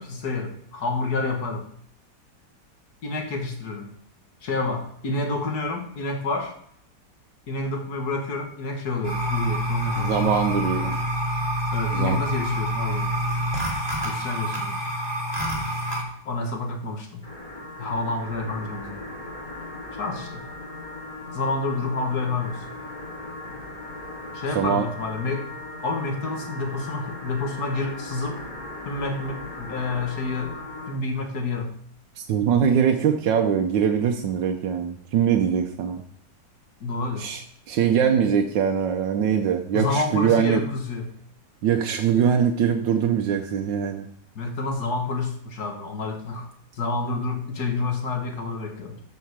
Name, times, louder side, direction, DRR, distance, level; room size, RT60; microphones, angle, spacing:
voice 1, 0.0-1.7 3.0-3.9 4.4-6.5 7.5-10.3 11.7-13.2 14.0-14.8 16.3-17.3 17.8-19.0 20.0-20.4 21.3-22.6 24.3-25.5 25.8-28.4 28.9-30.6 30.9-31.7 36.8-37.3 39.7-41.1 44.4-49.0, left 3 dB, 60° left, 4 dB, 1.9 m, -29 dB
sound 1, 9.0-16.0, equal, 15° right, 2.7 m, -27 dB
voice 2, 10.0-11.0 11.9-12.2 24.5-24.9 32.2-36.0 37.2-40.6 41.6-44.1, right 8 dB, 90° right, 4 dB, 1.5 m, -22 dB
sound 2, 17.2-31.0, left 2 dB, 30° left, 4.3 m, -38 dB
13.0 x 5.6 x 4.7 m, 0.65 s
omnidirectional pair, 1.9 m